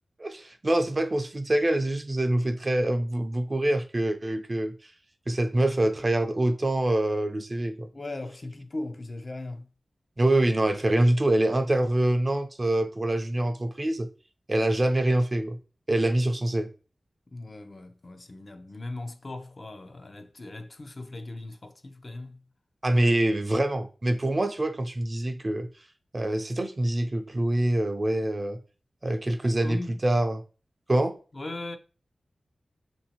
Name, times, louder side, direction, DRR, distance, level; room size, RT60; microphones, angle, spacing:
voice 1, 0.2-4.7 5.3-7.9 10.2-14.1 14.5-15.6 15.9-16.7 22.8-25.7 26.1-28.6 29.0-30.4 30.9-31.1, right 1 dB, 35° right, 0.5 m, -25 dB
voice 2, 7.9-9.7 17.3-22.4 29.4-30.0 31.3-31.8, left 2 dB, 45° left, 0.5 m, -38 dB
6.1 x 2.7 x 2.9 m
wide cardioid pair, 85°, 0 cm